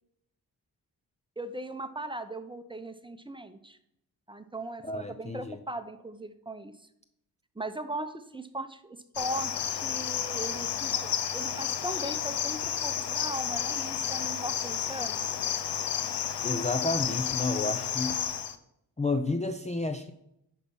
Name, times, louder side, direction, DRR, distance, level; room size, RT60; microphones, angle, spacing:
voice 1, 1.4-3.8 4.3-6.7 7.6-15.3, right 1 dB, 10° right, 9 dB, 0.8 m, -38 dB
voice 2, 4.8-5.6 16.4-18.2 19.0-20.1, left 2 dB, 15° left, 7 dB, 0.5 m, -31 dB
Cricket, 9.2-18.6, left 9 dB, 80° left, 0.7 m, -31 dB
10.5 x 4.1 x 5.5 m, 0.78 s
cardioid pair, 60°, 41 cm